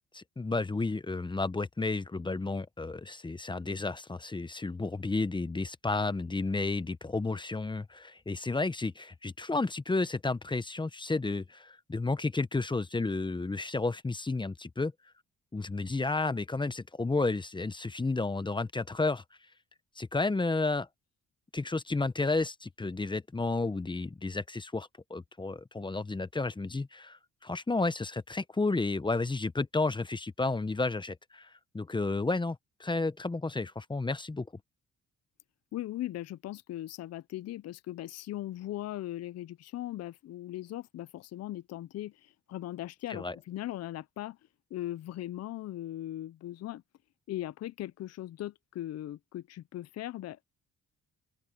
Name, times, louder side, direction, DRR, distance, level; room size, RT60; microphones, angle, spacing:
voice 1, 0.1-14.9 15.5-19.2 20.0-20.9 21.5-31.5 31.7-34.5 43.1-43.4, left 3 dB, 15° left, 0.9 m, -32 dB
voice 2, 35.7-44.4 44.7-46.8 47.3-50.4, left 14 dB, 55° left, 0.5 m, -39 dB
open air
cardioid pair, 90°, 30 cm